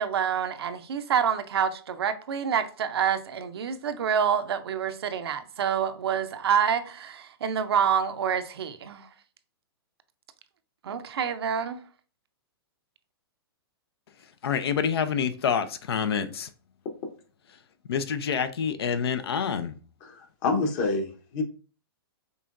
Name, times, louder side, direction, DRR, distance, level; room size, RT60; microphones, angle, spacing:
voice 1, 0.0-9.1 10.8-11.8, right 8 dB, 75° right, 0.6 m, -27 dB
voice 2, 14.4-16.5 17.9-19.7, left 7 dB, 75° left, 0.5 m, -27 dB
voice 3, 20.0-21.4, left 3 dB, 45° left, 1.1 m, -28 dB
5.4 x 3.0 x 2.5 m
hypercardioid pair, 125°, 13 cm